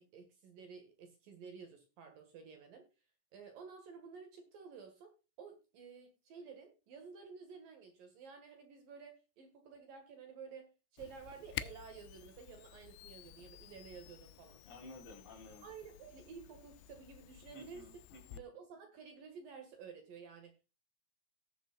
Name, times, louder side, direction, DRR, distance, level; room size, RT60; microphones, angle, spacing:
voice 1, 0.0-2.8 3.3-5.1 5.4-14.6 15.6-17.8 18.4-20.6, right 5 dB, 60° right, 5 dB, 2.9 m, -52 dB
Camera, 11.0-18.4, left 13 dB, 80° left, 2.6 m, -51 dB
voice 2, 14.6-15.7 17.5-18.4, left 2 dB, 50° left, 1 dB, 4.1 m, -53 dB
19.0 x 7.2 x 2.3 m, 0.30 s
omnidirectional pair, 5.0 m